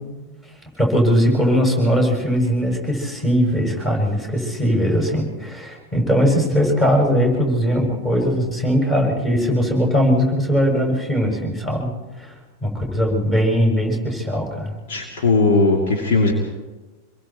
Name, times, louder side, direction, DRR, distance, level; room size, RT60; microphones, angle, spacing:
voice 1, 0.8-11.9 12.6-14.7, equal, 15° left, 0 dB, 7.2 m, -19 dB
voice 2, 14.9-16.3, left 3 dB, 55° left, 1 dB, 2.7 m, -18 dB
27.0 x 22.5 x 4.5 m, 1.2 s
figure-of-eight pair, 90°, 0 cm